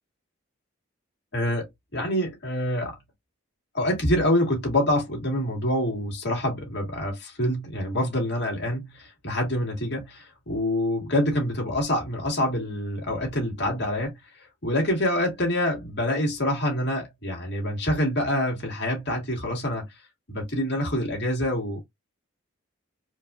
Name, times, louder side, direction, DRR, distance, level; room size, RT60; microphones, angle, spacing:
voice 1, 1.3-3.0 3.7-19.9 20.3-21.8, left 1 dB, 55° left, 1.9 m, -26 dB
4.4 x 2.6 x 2.3 m
head